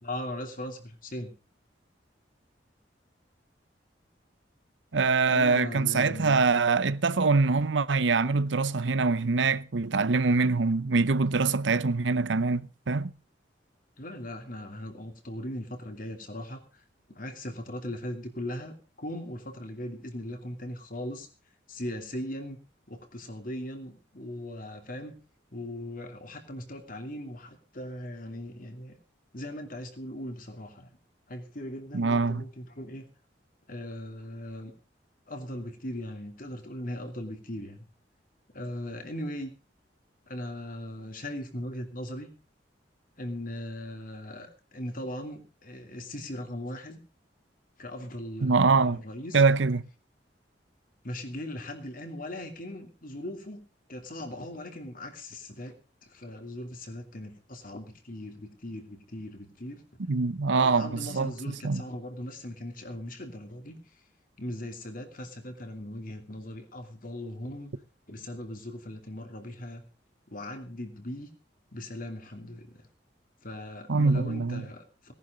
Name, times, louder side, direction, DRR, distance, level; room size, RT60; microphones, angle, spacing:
voice 1, 0.0-1.3 5.3-6.5 14.0-16.6 17.1-21.3 21.7-22.6 22.9-25.2 25.5-29.0 29.3-30.9 31.3-33.1 33.7-34.7 35.3-37.8 38.5-39.5 40.3-42.3 43.2-47.0 47.8-49.4 51.0-53.6 53.9-55.8 56.1-59.8 60.5-63.8 64.4-67.7 68.1-69.8 70.3-71.3 71.7-72.8 73.4-75.1, left 1 dB, 50° left, 2.8 m, -39 dB
voice 2, 4.9-13.1 31.9-32.4 48.4-49.0 49.3-49.8 60.1-61.8 73.9-74.6, right 4 dB, 85° right, 0.8 m, -24 dB
18.0 x 11.0 x 5.2 m
head